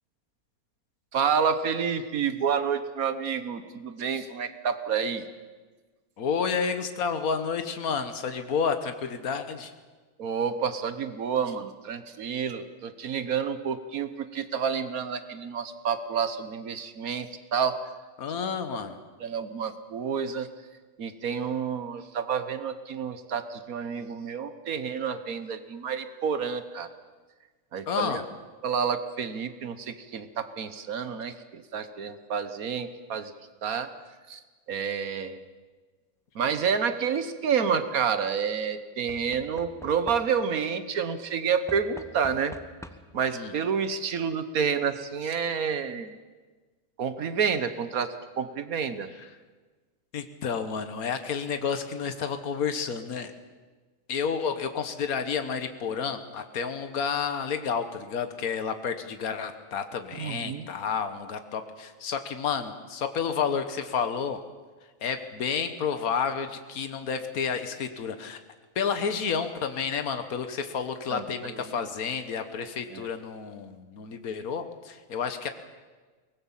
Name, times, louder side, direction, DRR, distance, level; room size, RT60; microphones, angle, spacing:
voice 1, 1.1-5.2 10.2-17.8 19.2-20.5 21.0-26.9 27.7-28.2 28.6-33.3 33.6-33.9 34.3-34.4 34.7-35.4 36.3-42.6 43.1-46.2 47.0-49.1 60.2-60.7 71.1-71.5 72.9-73.1, right 6 dB, 75° right, 11 dB, 1.5 m, -29 dB
voice 2, 6.2-9.7 18.2-19.0 27.9-28.2 43.3-43.5 49.2-49.3 50.1-53.3 54.1-64.4 65.0-68.4 68.8-75.5, left 6 dB, 80° left, 8 dB, 1.7 m, -30 dB
Knock / Wood, 36.9-37.4 39.1-40.6 41.7-43.3 44.3-44.4 44.6-44.7, equal, ahead, 1.1 m, -46 dB
23.0 x 19.5 x 7.3 m, 1.4 s
omnidirectional pair, 1.5 m